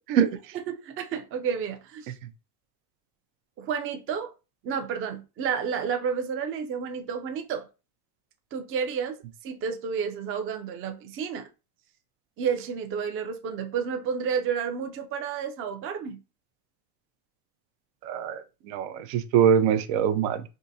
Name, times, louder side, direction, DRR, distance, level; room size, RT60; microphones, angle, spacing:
voice 1, 0.5-2.1 3.6-4.3 4.6-7.7 8.5-9.2 9.4-11.5 12.4-16.2, right 7 dB, 30° right, 0.4 m, -31 dB
voice 2, 18.0-20.4, right 8 dB, 70° right, 0.6 m, -23 dB
3.6 x 2.6 x 2.7 m
cardioid pair, 130°, 46 cm